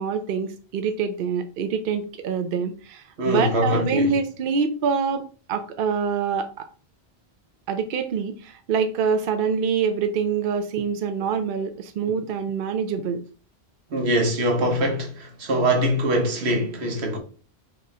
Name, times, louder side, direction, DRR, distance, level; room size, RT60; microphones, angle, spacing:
voice 1, 0.0-6.6 7.7-13.2, right 6 dB, 65° right, 0.7 m, -25 dB
voice 2, 3.2-4.1 13.9-17.2, right 1 dB, 90° right, 1.3 m, -23 dB
5.0 x 3.0 x 2.8 m
omnidirectional pair, 1.1 m